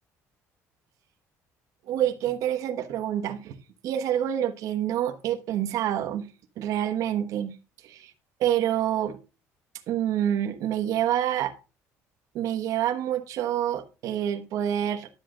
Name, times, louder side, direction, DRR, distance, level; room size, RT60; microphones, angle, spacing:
voice 1, 1.9-3.6 3.8-6.3 6.6-7.5 7.8-8.1 8.4-9.2 9.9-11.5 12.3-15.1, right 11 dB, 65° right, 5 dB, 1.1 m, -27 dB
11.0 x 7.3 x 3.8 m, 0.30 s
cardioid pair, 130°, 6 cm